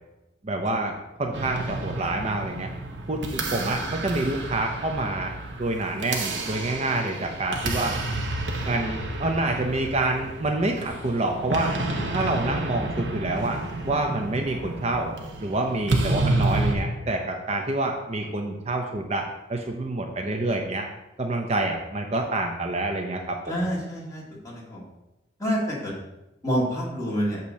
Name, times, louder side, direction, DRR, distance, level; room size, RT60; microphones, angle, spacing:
voice 1, 0.4-2.7 3.1-5.3 5.6-7.9 8.6-11.7 12.1-13.6 13.8-15.1 15.4-20.9 21.2-23.7, right 2 dB, 35° right, 2 dB, 0.6 m, -27 dB
sound 1, 1.3-16.8, right 2 dB, 70° right, 1.0 m, -30 dB
voice 2, 23.5-24.8 25.4-25.9 26.4-27.4, equal, 20° left, -5 dB, 2.0 m, -28 dB
8.4 x 3.0 x 6.2 m, 0.96 s
head